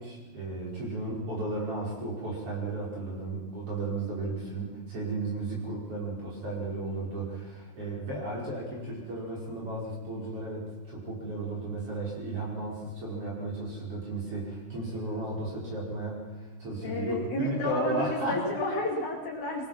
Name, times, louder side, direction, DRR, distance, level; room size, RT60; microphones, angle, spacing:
voice 1, 0.0-18.4, right 2 dB, 35° right, -3 dB, 5.9 m, -34 dB
voice 2, 16.8-19.7, left 2 dB, 55° left, 0 dB, 3.7 m, -31 dB
22.5 x 19.5 x 5.9 m, 1.2 s
omnidirectional pair, 4.6 m